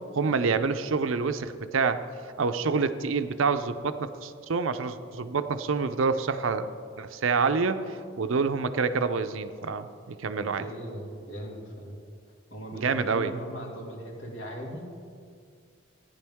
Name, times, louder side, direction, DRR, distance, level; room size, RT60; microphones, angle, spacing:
voice 1, 0.0-2.0 2.4-6.7 7.0-10.6 12.8-13.3, right 4 dB, 80° right, 10 dB, 0.5 m, -27 dB
voice 2, 10.4-12.0 12.5-14.8, equal, 65° left, -1 dB, 2.0 m, -39 dB
14.5 x 10.0 x 3.5 m, 2.2 s
head